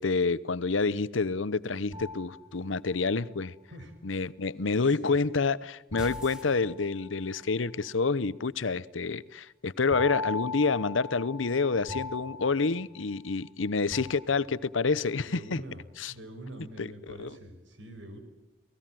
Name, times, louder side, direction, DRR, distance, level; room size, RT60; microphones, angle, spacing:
voice 1, 0.0-3.5 4.0-15.6 16.0-16.1 16.8-17.3, left 4 dB, 90° left, 0.8 m, -28 dB
sound 1, 1.9-3.1 5.9-7.5 9.9-13.5 13.9-14.8, left 3 dB, 20° right, 2.9 m, -40 dB
sound 2, 6.0-7.2, equal, 5° right, 2.2 m, -45 dB
voice 2, 15.2-15.8 16.1-18.2, right 1 dB, 75° right, 5.4 m, -44 dB
29.0 x 19.5 x 7.6 m
head